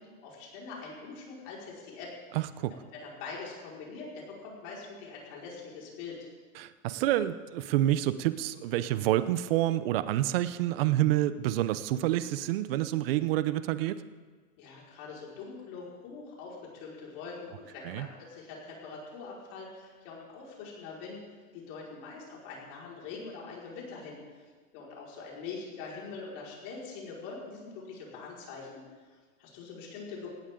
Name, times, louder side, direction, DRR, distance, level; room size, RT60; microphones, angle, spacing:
voice 1, 0.0-2.1 2.9-6.2 14.6-24.4 24.7-28.8 29.1-30.3, left 4 dB, 40° left, -4 dB, 5.1 m, -43 dB
voice 2, 2.3-2.7 6.6-14.0 17.8-18.1, right 14 dB, 40° right, 14 dB, 0.7 m, -28 dB
18.0 x 17.5 x 3.8 m, 1.4 s
hypercardioid pair, 150°, 44 cm